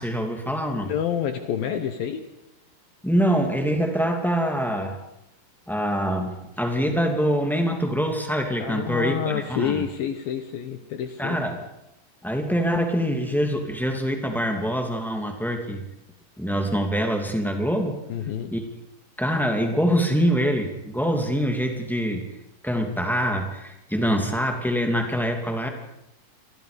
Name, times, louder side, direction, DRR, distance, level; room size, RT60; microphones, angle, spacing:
voice 1, 0.0-0.9 3.0-5.0 5.7-9.8 11.2-11.6 12.2-15.8 16.4-18.0 18.5-18.6 19.2-22.2 22.6-25.7, equal, ahead, 3 dB, 0.8 m, -24 dB
voice 2, 0.7-2.2 8.6-11.4 18.1-18.5, left 8 dB, 65° left, 8 dB, 2.4 m, -28 dB
29.0 x 22.5 x 5.3 m, 0.85 s
omnidirectional pair, 5.6 m